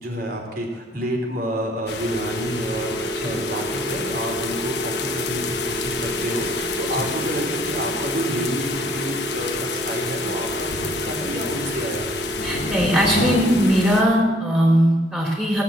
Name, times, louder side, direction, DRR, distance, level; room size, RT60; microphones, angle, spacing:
voice 1, 0.0-10.7 11.0-12.2, right 1 dB, 55° right, 0 dB, 3.4 m, -29 dB
sound 1, 1.9-14.0, left 5 dB, 70° left, 1.2 m, -29 dB
sound 2, 2.1-13.9, right 2 dB, 10° left, 1.1 m, -31 dB
voice 2, 12.4-15.6, equal, 10° right, -4 dB, 3.4 m, -19 dB
17.0 x 8.4 x 7.4 m, 1.3 s
head